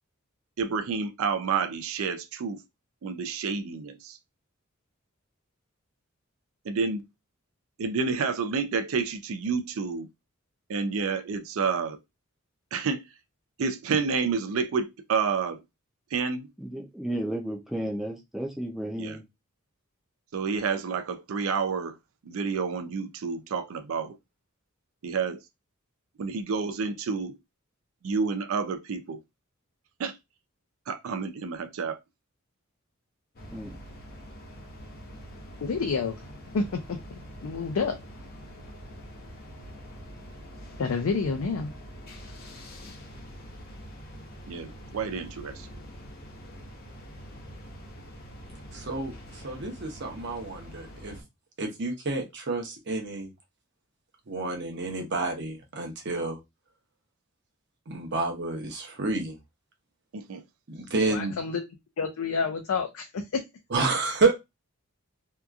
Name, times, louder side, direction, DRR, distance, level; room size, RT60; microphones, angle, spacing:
voice 1, 0.6-2.6 3.0-4.2 6.6-7.0 7.8-10.1 10.7-12.0 12.7-13.0 13.6-15.6 16.1-16.5 19.0-19.2 20.3-22.0 22.3-24.1 25.0-25.4 26.2-27.3 28.0-29.2 30.0-30.2 30.9-32.0 44.5-45.7 60.1-60.4, right 5 dB, 75° right, 0.4 m, -29 dB
voice 2, 16.6-19.2 33.5-33.7, right 1 dB, ahead, 0.4 m, -33 dB
sound 1, 33.4-51.2, equal, 45° left, 0.7 m, -45 dB
voice 3, 35.6-36.2 36.5-37.9 40.8-41.7 61.1-61.6 62.0-63.2, left 4 dB, 80° left, 0.4 m, -29 dB
voice 4, 48.7-51.1 51.6-53.3 54.3-56.4 57.9-59.4 60.7-61.3 63.7-64.3, right 3 dB, 55° right, 0.8 m, -29 dB
2.8 x 2.3 x 2.3 m
head